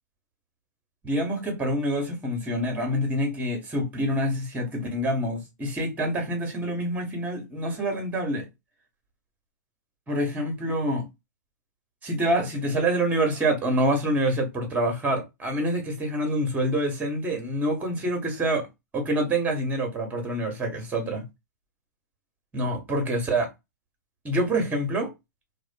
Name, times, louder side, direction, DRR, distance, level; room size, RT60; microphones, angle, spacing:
voice 1, 1.0-8.5 10.1-11.0 12.0-18.6 18.9-21.2 22.5-23.5 24.2-25.1, right 1 dB, 15° right, 1.1 m, -26 dB
2.4 x 2.3 x 2.5 m
hypercardioid pair, 120°, 10 cm